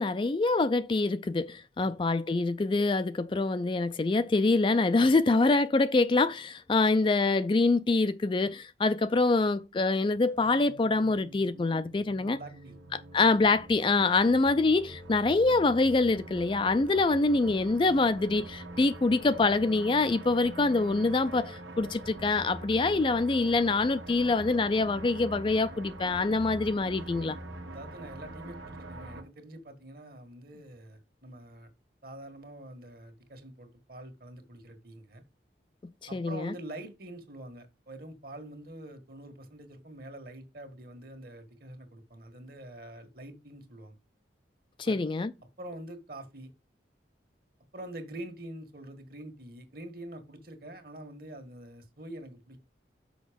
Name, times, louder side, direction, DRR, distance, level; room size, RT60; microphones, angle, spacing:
voice 1, 0.0-12.4 13.1-27.4 36.1-36.5 44.8-45.3, left 3 dB, 25° left, 0.4 m, -25 dB
sound 1, 10.2-29.2, right 1 dB, 85° right, 1.6 m, -44 dB
voice 2, 12.3-12.7 27.7-31.7 32.0-35.2 36.1-44.0 44.8-45.0 45.6-46.5 47.7-52.6, right 1 dB, 50° right, 1.6 m, -45 dB
6.3 x 5.5 x 5.1 m
head